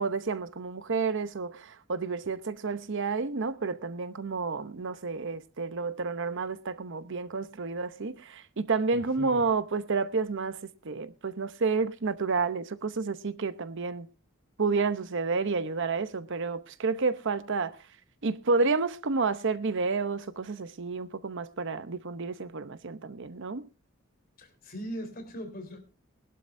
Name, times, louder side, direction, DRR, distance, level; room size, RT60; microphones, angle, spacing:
voice 1, 0.0-10.6 10.8-14.1 14.6-17.8 18.2-23.7, right 4 dB, 60° right, 0.8 m, -30 dB
voice 2, 8.9-9.5 24.4-25.8, equal, 45° left, 3.8 m, -40 dB
21.0 x 12.0 x 2.6 m
head